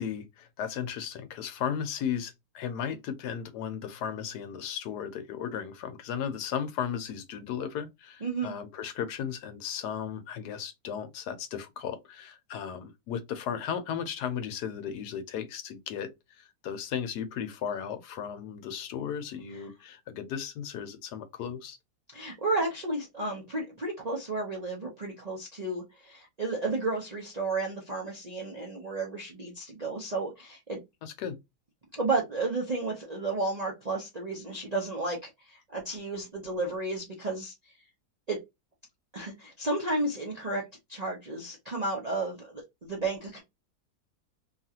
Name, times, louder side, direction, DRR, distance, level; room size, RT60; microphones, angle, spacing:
voice 1, 0.0-16.1 16.4-21.8 31.0-31.4, left 8 dB, 80° left, 1.2 m, -35 dB
voice 2, 8.2-8.5 19.5-19.6 22.1-30.8 31.9-37.5 38.3-38.4 39.1-40.6 40.9-43.4, right 2 dB, 50° right, 0.5 m, -32 dB
3.0 x 2.4 x 2.7 m
omnidirectional pair, 1.7 m